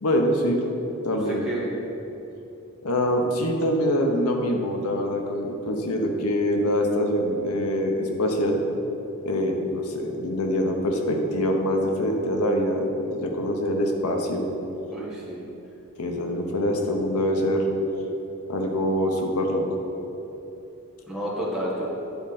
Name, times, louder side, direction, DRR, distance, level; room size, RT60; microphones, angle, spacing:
voice 1, 0.0-0.6 1.0-1.4 2.8-8.6 9.2-14.5 16.0-17.6 18.5-19.7, equal, 75° left, 2 dB, 0.8 m, -24 dB
voice 2, 1.1-1.6 14.9-15.6 21.1-21.9, right 1 dB, ahead, -8 dB, 1.5 m, -31 dB
9.6 x 3.7 x 4.1 m, 2.9 s
head